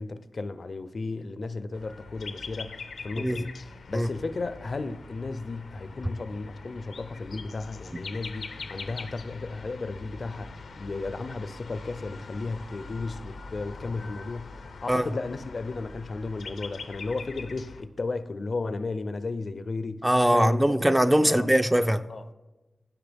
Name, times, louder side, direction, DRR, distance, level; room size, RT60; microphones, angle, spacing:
voice 1, 0.0-14.5 14.8-20.0 20.3-20.6 21.3-21.5 22.1-22.3, left 3 dB, 55° left, 0.5 m, -34 dB
sound 1, 1.7-17.8, left 4 dB, 85° left, 0.7 m, -42 dB
voice 2, 20.0-22.0, right 1 dB, 10° right, 0.4 m, -21 dB
16.0 x 5.9 x 3.4 m
wide cardioid pair, 95°, 0 cm